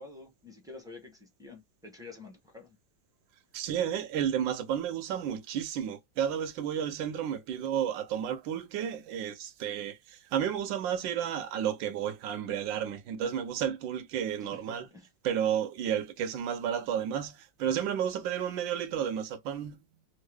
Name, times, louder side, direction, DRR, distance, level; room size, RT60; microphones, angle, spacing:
voice 1, 0.0-2.8 14.4-15.1, left 3 dB, 5° right, 0.5 m, -49 dB
voice 2, 3.5-14.9 15.2-19.8, right 9 dB, 80° right, 1.4 m, -32 dB
3.7 x 2.0 x 3.4 m
omnidirectional pair, 2.1 m